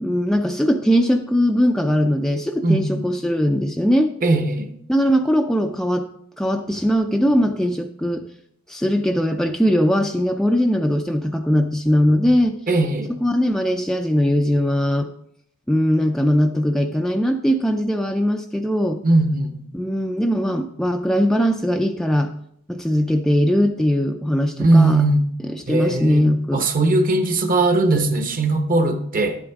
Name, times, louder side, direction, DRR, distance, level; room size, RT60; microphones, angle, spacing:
voice 1, 0.0-4.1 4.9-6.1 6.4-8.3 8.7-12.6 13.1-15.1 15.7-19.0 19.7-22.3 22.7-25.0 25.5-26.7, equal, ahead, 4 dB, 0.3 m, -20 dB
voice 2, 4.2-4.7 12.7-13.1 19.0-19.6 24.6-25.2 25.7-29.4, right 2 dB, 40° right, 7 dB, 1.0 m, -19 dB
11.5 x 8.5 x 3.6 m, 0.71 s
head